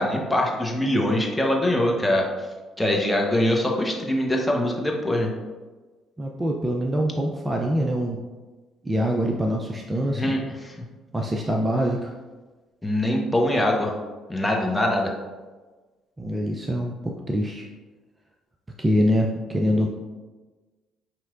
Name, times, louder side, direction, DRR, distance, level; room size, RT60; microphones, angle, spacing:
voice 1, 0.0-2.3 2.8-5.3 10.2-10.4 12.8-13.9 14.3-15.1, left 1 dB, 10° left, 0 dB, 0.9 m, -23 dB
voice 2, 6.2-8.2 8.8-10.4 11.1-12.1 16.2-17.7 18.8-19.9, equal, 25° right, 1 dB, 0.5 m, -24 dB
5.6 x 3.0 x 2.5 m, 1.3 s
hypercardioid pair, 55°, 0 cm